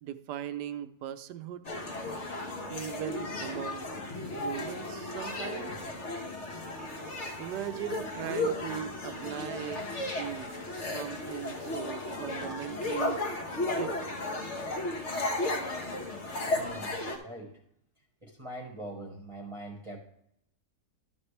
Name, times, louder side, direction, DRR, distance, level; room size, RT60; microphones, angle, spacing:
voice 1, 0.0-1.7 2.7-3.9 4.3-5.7 7.4-9.8 10.2-13.2 13.6-14.2, right 10 dB, 80° right, 11 dB, 1.2 m, -39 dB
sound 1, 1.6-17.2, left 2 dB, 45° left, 1.4 m, -34 dB
voice 2, 16.4-17.6 18.2-20.0, right 1 dB, 20° right, 0 dB, 1.2 m, -43 dB
12.0 x 7.4 x 3.3 m, 0.75 s
omnidirectional pair, 1.8 m